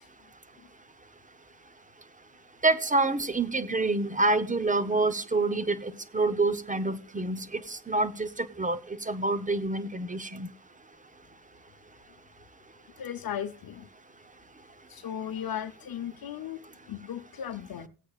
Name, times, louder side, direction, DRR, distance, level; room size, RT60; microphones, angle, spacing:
voice 1, 2.6-10.5, right 2 dB, 20° right, 0.9 m, -27 dB
voice 2, 13.0-13.9 14.9-16.6 16.9-17.9, left 9 dB, 60° left, 0.9 m, -36 dB
18.5 x 8.5 x 2.4 m
cardioid pair, 85°, 41 cm